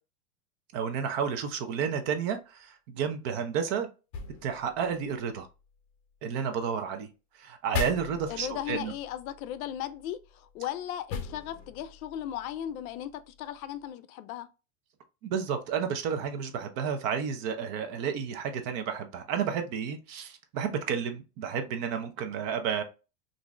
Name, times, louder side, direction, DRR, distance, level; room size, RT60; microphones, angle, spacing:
voice 1, 0.7-3.9 4.4-5.5 6.2-7.1 7.4-8.9 15.2-22.8, right 7 dB, 40° right, 0.6 m, -31 dB
sound 1, 4.1-6.2 7.7-13.9, left 5 dB, 40° left, 0.8 m, -41 dB
voice 2, 8.3-14.5, left 11 dB, 70° left, 0.6 m, -37 dB
3.5 x 2.6 x 3.1 m
supercardioid pair, 145°, 44 cm